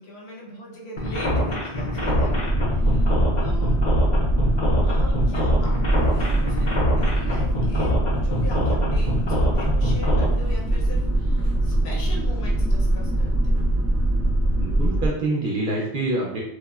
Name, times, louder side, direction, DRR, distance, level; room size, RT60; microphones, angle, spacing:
voice 1, 0.0-3.1 3.4-3.8 4.8-13.6, equal, 80° left, -2 dB, 1.0 m, -40 dB
sound 1, 1.0-10.3, left 1 dB, 50° left, 0.7 m, -24 dB
sound 2, 2.0-15.1, right 1 dB, 25° right, 0.4 m, -22 dB
voice 2, 14.6-16.4, right 2 dB, 60° right, -3 dB, 0.7 m, -26 dB
3.4 x 2.0 x 2.3 m, 0.77 s
omnidirectional pair, 1.1 m